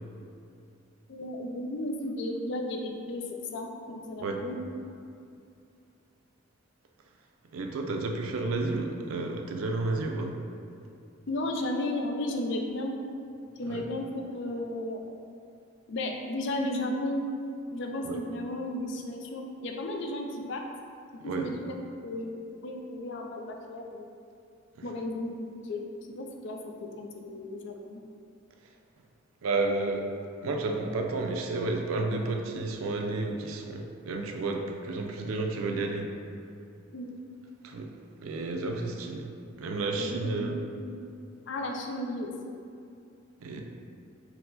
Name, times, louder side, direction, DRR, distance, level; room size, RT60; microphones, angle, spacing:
voice 1, 1.1-3.2 3.5-4.6 11.3-13.0 13.6-15.2 15.9-17.3 17.7-20.6 21.1-22.3 22.6-24.1 24.8-28.0 36.9-37.1 40.0-41.1 41.5-42.6, left 1 dB, 60° left, 2 dB, 0.4 m, -34 dB
voice 2, 7.5-10.4 13.7-13.8 18.1-18.2 21.2-21.5 29.4-30.1 30.4-36.1 37.6-37.9 38.2-39.3 39.6-40.6 43.4-43.6, right 3 dB, 90° right, 3 dB, 0.4 m, -31 dB
4.5 x 2.1 x 3.9 m, 2.5 s
head